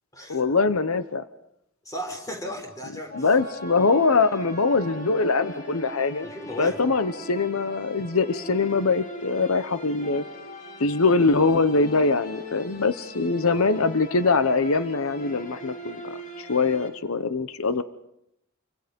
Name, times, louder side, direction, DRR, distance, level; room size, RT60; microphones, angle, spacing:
voice 1, 0.3-1.2 3.2-6.3 6.6-10.2 10.8-17.8, left 4 dB, 90° left, 12 dB, 0.9 m, -23 dB
voice 2, 1.8-3.3 6.2-6.8, equal, 15° left, 2 dB, 5.0 m, -35 dB
sound 1, 3.1-16.9, equal, 35° left, 3.4 m, -41 dB
28.5 x 24.5 x 5.3 m, 0.80 s
head